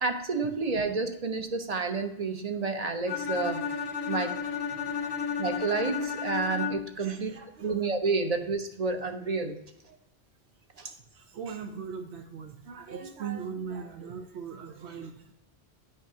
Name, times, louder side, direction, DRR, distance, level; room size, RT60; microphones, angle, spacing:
voice 1, 0.0-3.7 4.1-4.4 5.4-7.3 7.6-9.6 10.8-10.9, right 4 dB, 45° right, 7 dB, 0.6 m, -30 dB
Bowed string instrument, 3.1-7.1, left 7 dB, 80° left, 0.9 m, -33 dB
voice 2, 5.0-5.3 7.0-7.9 9.9-10.0 10.8-15.3, right 6 dB, 85° right, 5 dB, 1.0 m, -40 dB
9.0 x 5.4 x 2.7 m, 0.84 s
omnidirectional pair, 1.1 m